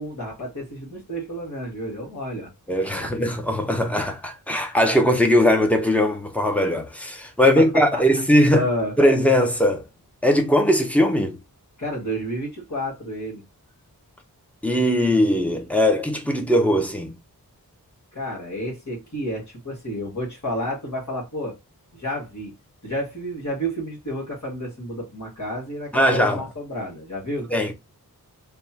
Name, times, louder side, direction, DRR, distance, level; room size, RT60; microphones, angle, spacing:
voice 1, 0.0-2.5 3.0-3.1 7.9-8.0 8.5-8.9 11.8-13.4 18.1-21.6 21.9-22.5 22.8-27.5, equal, 50° left, 1.8 m, -30 dB
voice 2, 2.7-8.7 9.0-9.9 10.2-11.4 14.6-17.2 25.9-26.4 27.5-27.7, equal, 5° left, 0.8 m, -20 dB
3.4 x 2.4 x 4.3 m
wide cardioid pair, 75°, 38 cm